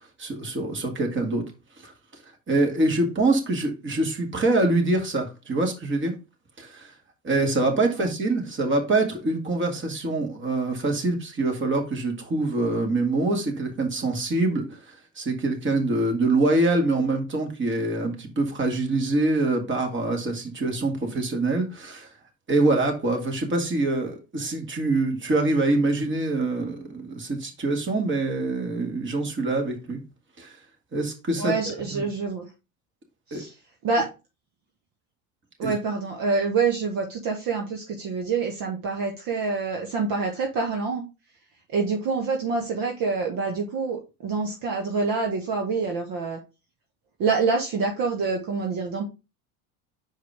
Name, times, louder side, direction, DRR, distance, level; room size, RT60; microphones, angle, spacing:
voice 1, 0.2-1.4 1.8-1.9 2.5-6.2 6.6-6.9 7.2-22.1 22.5-30.0 30.4-30.5 30.9-31.5 31.9-32.0 33.3-33.4 35.6-35.7, right 2 dB, 25° right, 3 dB, 1.9 m, -25 dB
voice 2, 31.4-32.5 33.3-33.5 33.8-34.1 35.6-41.0 41.7-46.4 47.2-49.0, right 4 dB, 50° right, 2 dB, 1.4 m, -26 dB
5.9 x 4.7 x 3.4 m, 0.28 s
hypercardioid pair, 75°, 44 cm